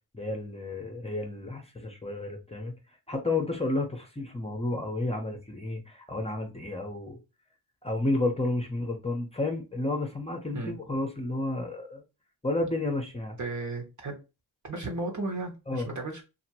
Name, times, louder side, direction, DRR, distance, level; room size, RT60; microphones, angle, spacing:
voice 1, 0.1-2.7 3.1-7.2 7.8-12.0 12.4-13.4 15.7-15.9, left 2 dB, 15° left, 0.8 m, -31 dB
voice 2, 13.4-14.1 14.6-16.2, right 2 dB, 45° right, 1.3 m, -34 dB
2.8 x 2.6 x 2.8 m
cardioid pair, 70°, 39 cm